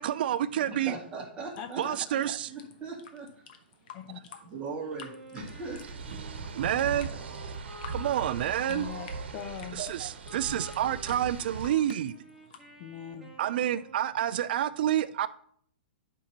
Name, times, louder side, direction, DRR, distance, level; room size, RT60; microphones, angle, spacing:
voice 1, 0.0-0.9 1.8-2.5 6.6-7.1 7.9-8.9 9.7-12.1 13.4-15.3, right 11 dB, 60° right, 0.5 m, -28 dB
voice 2, 0.6-2.2 2.5-3.4 4.5-6.1, right 3 dB, 20° right, 2.2 m, -40 dB
sound 1, 1.5-12.6, left 7 dB, 55° left, 1.1 m, -52 dB
voice 3, 1.6-2.0 3.9-4.2 8.7-9.8 12.8-13.3, left 9 dB, 35° left, 0.6 m, -41 dB
Wind instrument woodwind instrument, 4.9-9.6 10.2-14.2, right 2 dB, 5° right, 1.7 m, -50 dB
sound 2, 5.4-11.7, right 4 dB, 85° right, 1.2 m, -40 dB
10.5 x 5.5 x 3.0 m
hypercardioid pair, 145°, 6 cm